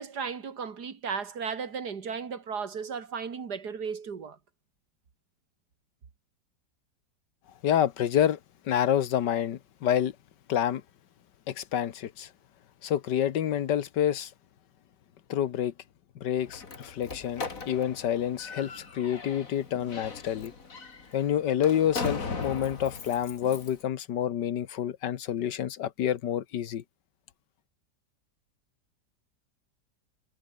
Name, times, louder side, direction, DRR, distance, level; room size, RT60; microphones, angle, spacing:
voice 1, 0.0-4.4, right 6 dB, 70° right, 2.5 m, -35 dB
voice 2, 7.6-8.4 8.7-10.2 10.5-10.8 11.5-12.3 12.8-14.3 15.3-15.7 16.2-20.5 21.1-26.8, left 10 dB, 85° left, 1.7 m, -28 dB
Slam, 16.4-23.8, left 4 dB, 50° left, 2.9 m, -39 dB
omnidirectional pair, 1.8 m